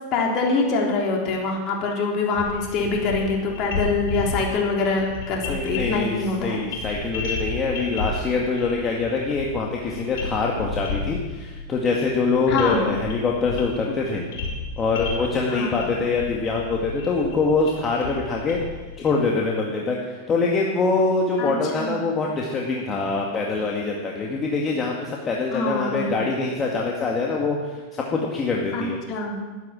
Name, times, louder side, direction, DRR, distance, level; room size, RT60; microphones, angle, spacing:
voice 1, 0.1-6.6 12.5-12.8 15.5-15.7 21.4-21.5 21.8-22.0 25.5-26.1 28.7-29.4, left 3 dB, 45° left, -1 dB, 3.7 m, -24 dB
sound 1, 2.3-19.1, left 3 dB, 65° left, 5.9 m, -33 dB
voice 2, 5.5-14.2 14.8-18.6 19.0-29.0, left 3 dB, 30° left, -1 dB, 2.0 m, -24 dB
12.0 x 10.5 x 7.5 m, 1.3 s
hypercardioid pair, 95°, 0 cm